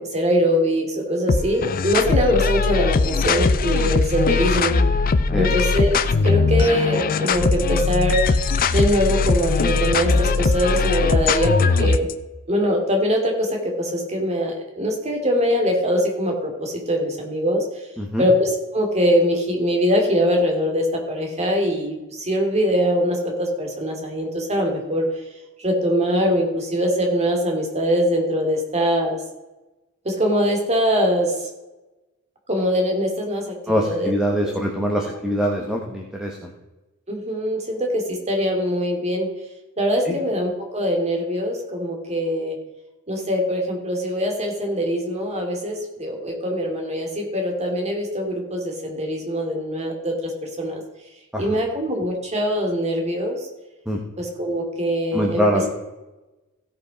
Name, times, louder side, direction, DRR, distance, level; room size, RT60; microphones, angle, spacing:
voice 1, 0.0-4.8 5.4-8.5 8.7-12.1 12.5-17.6 18.2-25.0 25.6-29.2 30.0-31.3 32.5-34.1 34.9-35.0 37.1-39.3 39.8-42.6 43.1-50.8 51.4-53.5 54.2-55.4, equal, 30° right, 1 dB, 2.3 m, -22 dB
sound 1, 1.3-12.1, left 4 dB, 40° left, 0.5 m, -20 dB
voice 2, 5.3-5.6 18.0-18.3 33.7-36.5 40.0-40.2 51.3-51.6 53.9-54.0 55.1-55.7, equal, 5° right, 0 dB, 1.1 m, -23 dB
15.5 x 5.6 x 5.1 m, 1.1 s
head